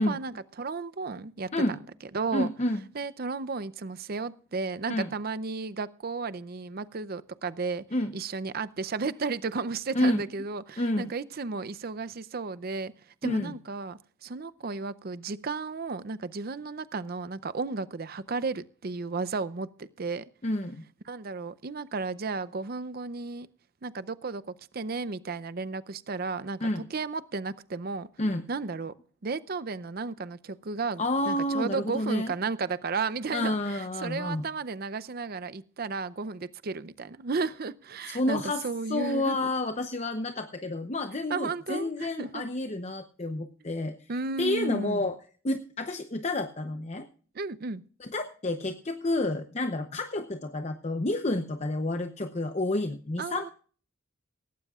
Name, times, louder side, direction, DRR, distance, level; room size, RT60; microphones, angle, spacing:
voice 1, 0.0-1.5 2.1-2.5 2.9-7.8 8.1-12.9 13.2-20.2 21.1-23.5 23.8-28.1 28.5-28.9 29.2-39.5 41.3-42.4 44.1-45.1 47.3-47.8 53.2-53.5, right 4 dB, 50° right, 0.6 m, -33 dB
voice 2, 2.3-2.8 4.9-5.1 7.9-8.1 9.9-10.2 10.8-11.1 13.2-13.5 20.4-20.8 26.6-26.8 28.2-28.4 31.0-32.3 33.3-34.5 38.1-38.6 38.9-44.0 44.4-45.1 45.4-47.1 48.0-53.5, left 1 dB, 35° left, 0.8 m, -29 dB
17.5 x 16.0 x 2.4 m
head